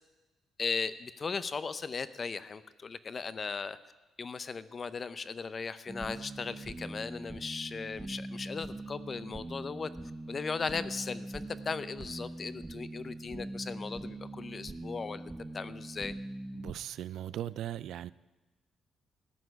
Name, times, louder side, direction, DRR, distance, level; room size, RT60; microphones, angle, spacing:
voice 1, 0.6-3.8 4.2-9.9 10.3-16.1, left 5 dB, 40° left, 14 dB, 0.7 m, -37 dB
sound 1, 5.9-16.7, right 2 dB, 20° right, 0.7 m, -42 dB
voice 2, 16.5-18.1, right 11 dB, 75° right, 18 dB, 0.3 m, -38 dB
14.0 x 6.1 x 9.5 m, 1.1 s
cardioid pair, 90°, 0 cm